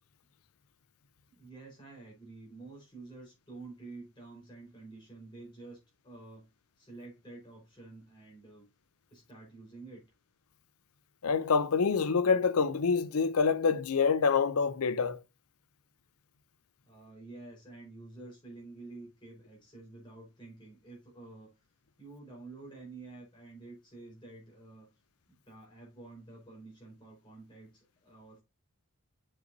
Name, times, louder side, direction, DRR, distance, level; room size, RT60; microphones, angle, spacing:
voice 1, 1.3-6.5 6.8-8.7 9.1-10.1 16.8-21.7 22.0-24.9 25.3-28.4, right 3 dB, 20° left, 4.5 m, -49 dB
voice 2, 11.2-15.2, left 5 dB, 80° left, 0.6 m, -26 dB
7.6 x 6.6 x 2.7 m
head